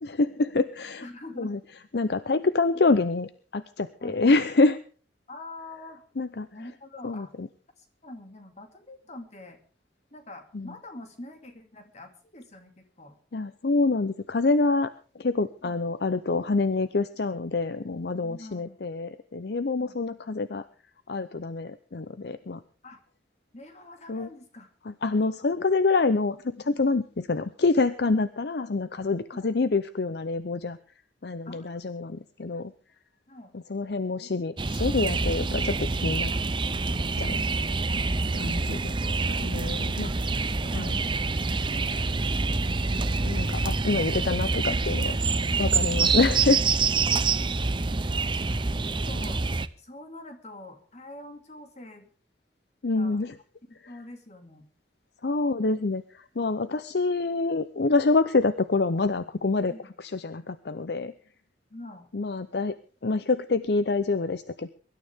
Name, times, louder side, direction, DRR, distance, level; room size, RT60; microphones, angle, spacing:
voice 1, 0.0-1.0 1.4-1.6 1.9-4.8 6.2-6.5 7.0-7.5 10.5-10.7 13.3-14.9 15.2-20.6 21.1-22.6 24.1-24.3 24.9-30.8 31.2-32.7 33.7-36.3 37.2-37.4 38.3-38.9 39.3-40.1 40.7-41.0 43.2-45.2 45.6-46.6 52.8-53.3 55.2-59.7 60.0-61.1 62.1-62.8 63.0-64.7, left 3 dB, 60° left, 13 dB, 0.6 m, -26 dB
voice 2, 1.0-1.6 4.0-4.2 5.3-6.0 6.5-7.3 7.8-9.6 10.1-13.2 15.6-15.8 18.2-18.9 19.7-20.0 22.8-23.0 23.5-24.7 29.3-29.5 31.5-31.8 33.3-33.5 37.9-38.0 39.0-40.1 40.6-41.9 45.8-46.1 47.1-47.3 48.0-52.1 52.9-53.2 53.7-54.7 59.7-59.9 61.7-62.1, left 2 dB, 40° left, 5 dB, 2.5 m, -45 dB
sound 1, 34.6-49.7, right 4 dB, 25° right, 0.7 m, -26 dB
23.5 x 12.5 x 3.6 m, 0.41 s
head